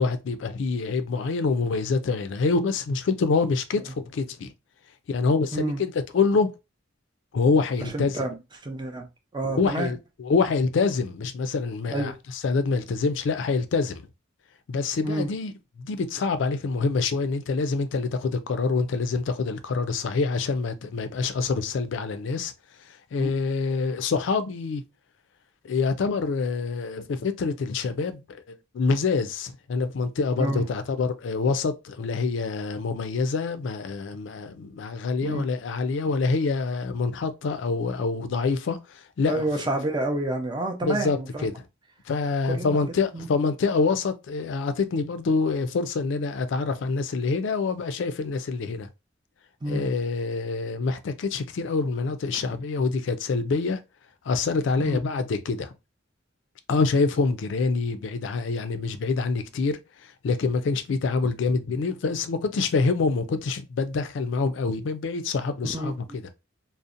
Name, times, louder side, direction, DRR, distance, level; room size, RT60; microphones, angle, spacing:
voice 1, 0.0-4.5 5.1-6.5 7.3-8.2 9.6-14.0 14.7-15.5 15.8-22.5 23.1-24.8 25.6-39.5 40.8-41.5 42.1-48.9 49.7-53.8 54.3-55.7 56.7-66.0, left 4 dB, 65° left, 0.4 m, -26 dB
voice 2, 7.8-8.4 8.6-9.1 9.3-9.9 11.9-12.1 15.0-15.3 23.2-23.3 30.4-30.6 35.2-35.5 39.3-41.5 42.4-42.8 43.1-43.3 49.6-49.9 54.8-55.0 65.7-65.9, right 1 dB, 25° right, 0.5 m, -29 dB
2.6 x 2.0 x 2.4 m
head